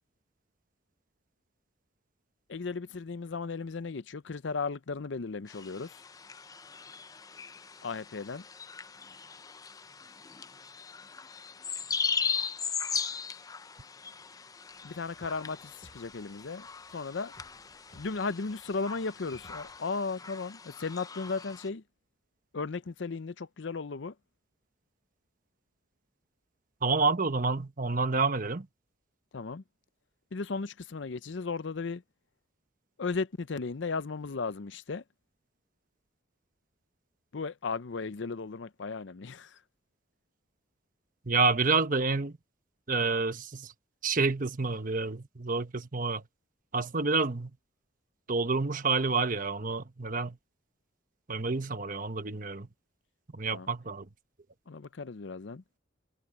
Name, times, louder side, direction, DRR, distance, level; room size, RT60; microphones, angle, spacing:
voice 1, 2.5-6.0 7.8-8.4 14.8-16.7 16.9-17.3 17.9-21.8 22.5-24.1 29.3-29.6 30.3-32.0 33.0-35.0 37.3-39.6 53.5-53.7 54.7-55.8, left 4 dB, 65° left, 0.6 m, -35 dB
sound 1, 5.5-21.7, left 6 dB, 20° left, 0.4 m, -39 dB
sound 2, 14.7-19.8, equal, 40° left, 5.3 m, -60 dB
voice 2, 26.8-28.7 41.3-42.4 42.9-43.7 44.0-46.2 46.7-47.5 48.3-50.4 51.3-52.7 53.3-54.1, right 4 dB, 45° right, 1.1 m, -28 dB
head